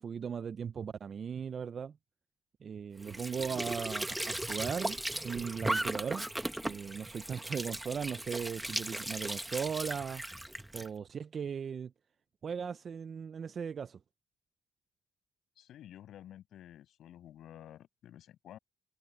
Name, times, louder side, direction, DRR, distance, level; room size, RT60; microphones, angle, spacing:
voice 1, 0.0-2.0 2.6-6.3 6.6-11.9 12.4-14.0, right 7 dB, 50° right, 0.4 m, -38 dB
Squeak / Sink (filling or washing) / Trickle dribble, 3.0-10.9, right 1 dB, 10° right, 1.3 m, -37 dB
voice 2, 15.6-18.6, left 11 dB, 80° left, 6.3 m, -52 dB
cardioid pair, 110°, 0 cm